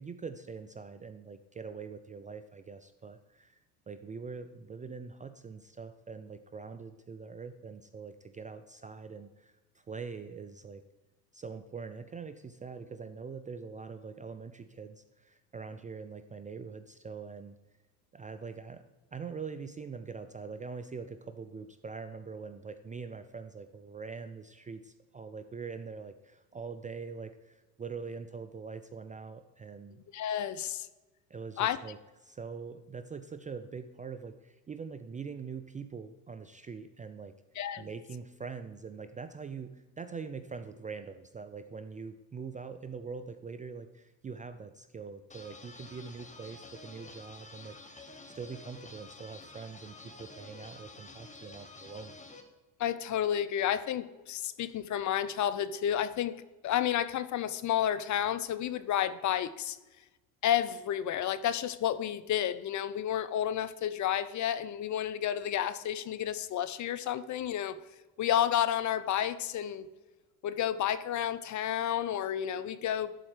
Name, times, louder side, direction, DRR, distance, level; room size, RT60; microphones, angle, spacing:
voice 1, 0.0-3.6 3.9-10.8 11.3-17.6 18.1-18.8 19.1-30.0 31.3-32.0 32.2-37.3 37.8-48.1 48.3-52.1, right 5 dB, 20° right, 10 dB, 0.4 m, -43 dB
voice 2, 30.1-30.9 31.6-31.8 37.6-37.9 52.8-56.4 56.6-59.8 60.4-67.8 68.2-69.9 70.4-73.1, left 10 dB, 40° left, 14 dB, 0.6 m, -31 dB
sound 1, 45.3-52.4, left 3 dB, 15° left, 1.3 m, -50 dB
11.5 x 4.3 x 4.9 m, 1.1 s
hypercardioid pair, 75°, 45 cm